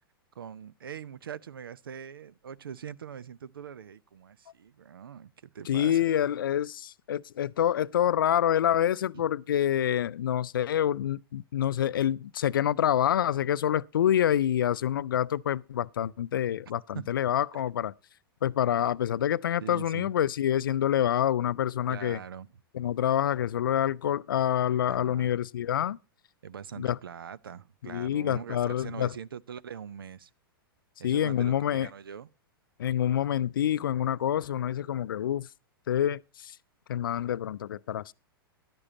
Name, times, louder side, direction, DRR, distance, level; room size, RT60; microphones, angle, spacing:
voice 1, 0.3-6.0 9.1-9.3 16.9-17.1 19.6-20.1 21.9-22.5 24.9-25.3 26.4-30.3 31.0-32.3, right 8 dB, 65° right, 0.6 m, -42 dB
voice 2, 5.7-17.9 18.4-22.2 22.7-26.0 26.8-27.0 27.8-29.1 31.0-31.9 32.8-35.5 35.9-36.6 36.9-38.1, left 10 dB, 60° left, 0.5 m, -27 dB
14.5 x 11.5 x 2.8 m
figure-of-eight pair, 100°, 13 cm